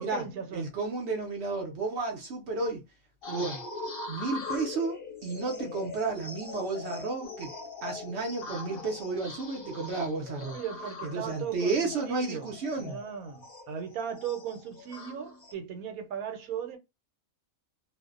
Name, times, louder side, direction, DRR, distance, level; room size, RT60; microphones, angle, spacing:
voice 1, 0.0-0.7 3.3-3.5 10.5-12.5 12.8-16.8, right 8 dB, 90° right, 1.1 m, -37 dB
voice 2, 0.5-2.8 3.3-3.6 4.1-7.5 7.8-10.6 11.0-13.0, right 3 dB, 60° right, 0.8 m, -32 dB
sound 1, 3.2-15.5, left 3 dB, 50° left, 0.7 m, -42 dB
2.5 x 2.0 x 2.4 m
omnidirectional pair, 1.5 m